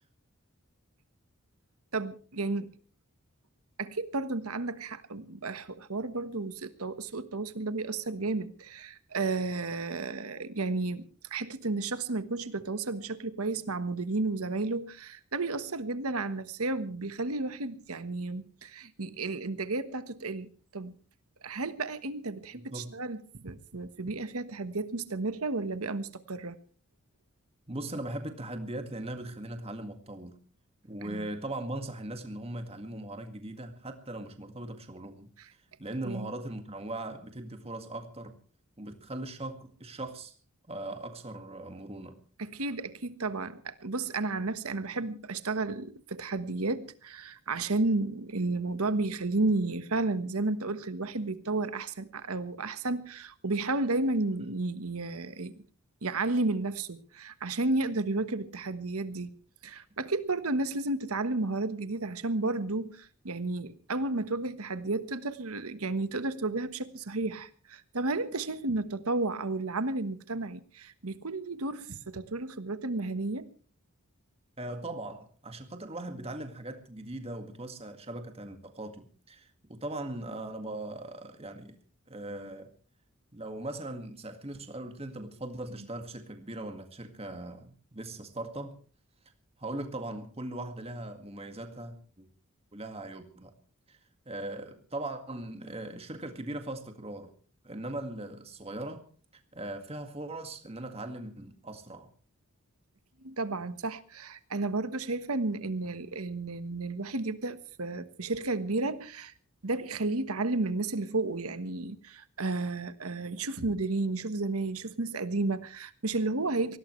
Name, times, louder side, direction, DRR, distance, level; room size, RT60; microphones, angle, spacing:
voice 1, 1.9-2.7 3.8-20.9 21.4-26.6 31.0-31.3 36.0-36.3 42.4-55.6 56.0-59.3 59.6-73.5 103.2-109.3 109.6-116.8, right 2 dB, 75° right, 1.3 m, -32 dB
voice 2, 22.5-23.0 27.7-30.4 30.8-35.3 35.8-38.4 38.8-40.3 40.7-42.2 74.6-81.8 82.1-82.7 83.3-88.8 89.6-92.3 92.7-93.5 93.9-94.0 94.3-97.3 97.6-99.1 99.5-102.1, right 1 dB, 25° right, 2.0 m, -39 dB
24.0 x 17.5 x 3.2 m
head